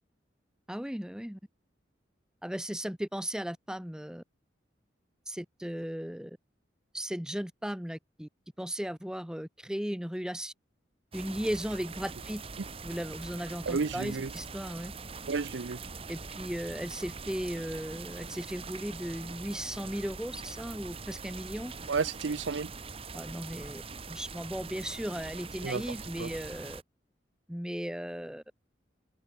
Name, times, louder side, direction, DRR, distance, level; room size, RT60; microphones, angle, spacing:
voice 1, 0.7-1.4 2.4-4.2 5.3-6.4 6.9-8.3 8.6-10.5 11.1-12.4 12.8-14.9 16.1-21.7 23.1-23.8 24.1-26.8 27.5-28.4, equal, 5° right, 0.9 m, -36 dB
sound 1, 11.1-26.8, right 4 dB, 30° right, 1.2 m, -43 dB
voice 2, 13.7-14.3 15.3-15.8 21.9-22.7 25.6-26.3, right 4 dB, 80° right, 0.6 m, -32 dB
open air
head